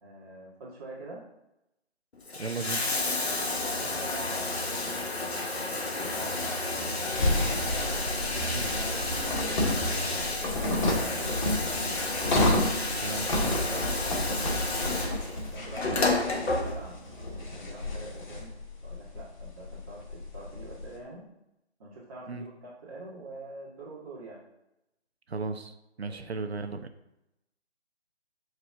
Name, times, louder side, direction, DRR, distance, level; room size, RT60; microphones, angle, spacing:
voice 1, 0.0-1.2 3.2-7.6 8.4-9.6 9.9-12.0 13.1-15.0 15.5-18.5 18.8-21.3 21.8-24.4 26.0-26.3 26.7-26.8, right 2 dB, 30° right, -10 dB, 2.2 m, -45 dB
Bathtub (filling or washing), 2.1-17.1 18.2-18.3, left 2 dB, 70° left, 2.0 m, -31 dB
voice 2, 2.4-2.8 8.5-8.7 13.0-13.3 15.8-16.0 22.3-22.4 25.3-26.9, right 4 dB, 65° right, 8 dB, 1.0 m, -35 dB
sound 1, 7.2-20.9, left 1 dB, 45° left, 2.1 m, -31 dB
13.5 x 4.9 x 3.7 m, 0.87 s
figure-of-eight pair, 160°, 34 cm